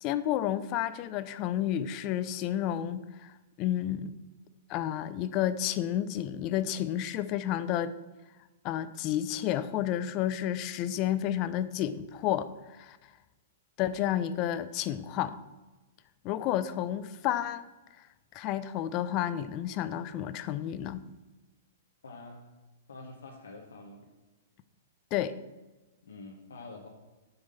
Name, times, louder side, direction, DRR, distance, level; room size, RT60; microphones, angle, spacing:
voice 1, 0.0-3.3 3.6-4.1 4.7-7.9 8.6-12.5 12.8-13.0 13.8-15.4 16.2-17.7 18.3-21.0 25.1-25.3, left 11 dB, 40° left, 13 dB, 0.5 m, -31 dB
voice 2, 22.0-22.5 22.9-24.0 26.0-26.9, left 3 dB, 85° left, 0 dB, 1.1 m, -46 dB
7.9 x 3.7 x 6.7 m, 1.1 s
hypercardioid pair, 130°, 0 cm